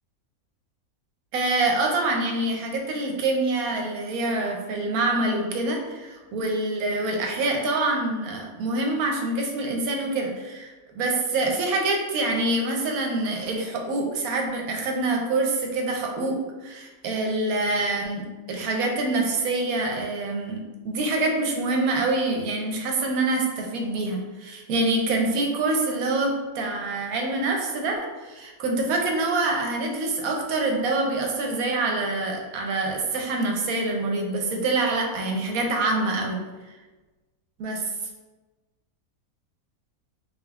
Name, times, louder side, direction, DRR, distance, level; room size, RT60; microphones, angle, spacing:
voice 1, 1.3-20.6 20.8-36.4 37.6-37.9, right 2 dB, 75° right, 2 dB, 1.1 m, -26 dB
4.0 x 3.5 x 2.3 m, 1.2 s
omnidirectional pair, 1.6 m